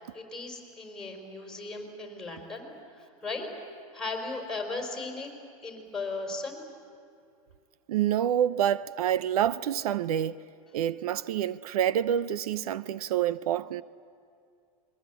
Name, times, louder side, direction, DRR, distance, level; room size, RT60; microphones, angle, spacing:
voice 1, 0.1-2.7 3.0-3.5 3.9-5.3 5.6-6.6, left 3 dB, 5° left, 4.8 m, -36 dB
voice 2, 7.9-10.4 10.7-13.8, right 10 dB, 85° right, 0.7 m, -27 dB
30.0 x 22.5 x 8.4 m
supercardioid pair, 145°, 19 cm